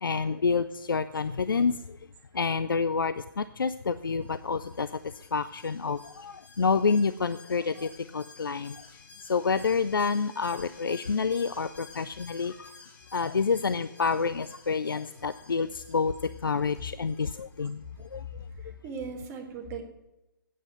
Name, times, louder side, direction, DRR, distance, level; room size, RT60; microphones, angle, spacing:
voice 1, 0.0-2.0 2.3-4.9 5.1-8.8 9.2-12.7 13.1-16.1 16.4-17.8 18.1-18.2, left 5 dB, 80° left, 13 dB, 0.4 m, -28 dB
Alarm, 4.2-17.7 18.0-18.1, left 4 dB, 15° left, 1.0 m, -53 dB
voice 2, 18.5-19.8, right 4 dB, 20° right, 3 dB, 1.5 m, -39 dB
9.2 x 7.6 x 8.5 m, 0.96 s
figure-of-eight pair, 135°, 11 cm